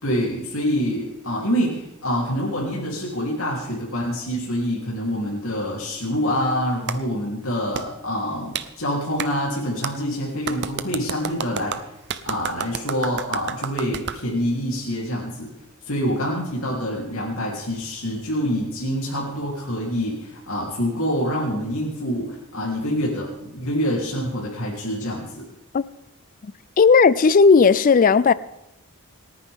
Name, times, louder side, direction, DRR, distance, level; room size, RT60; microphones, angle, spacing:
voice 1, 0.0-11.8 12.2-15.5 15.9-25.4, equal, 65° left, 3.4 m, -26 dB
Clapping, 6.9-7.0 7.7-7.9 8.5-8.7 9.2-9.3 9.8-9.9 10.5-14.2, right 7 dB, 50° right, 0.8 m, -30 dB
voice 2, 26.4-28.3, left 5 dB, 40° left, 0.4 m, -15 dB
29.0 x 9.6 x 3.6 m
head